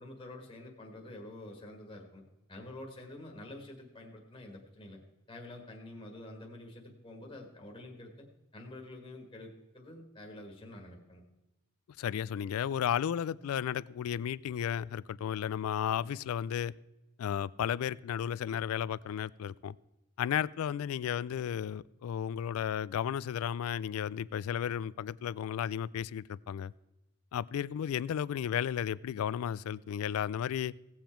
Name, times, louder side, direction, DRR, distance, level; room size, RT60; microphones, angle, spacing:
voice 1, 0.0-2.2 2.5-5.0 5.3-8.2 8.5-11.2, left 1 dB, 20° left, 1.6 m, -48 dB
voice 2, 12.0-16.7 17.2-19.7 20.2-26.7 27.3-30.7, left 9 dB, 85° left, 0.3 m, -33 dB
17.0 x 7.3 x 4.4 m
head